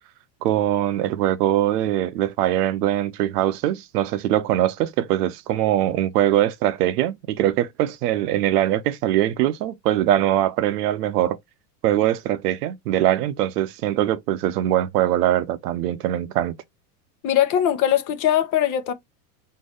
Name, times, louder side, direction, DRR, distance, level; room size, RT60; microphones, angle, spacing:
voice 1, 0.4-11.4 11.8-16.5, right 12 dB, 70° right, 0.8 m, -22 dB
voice 2, 17.2-18.9, left 10 dB, 40° left, 0.9 m, -20 dB
4.5 x 2.8 x 3.4 m
hypercardioid pair, 110°, 49 cm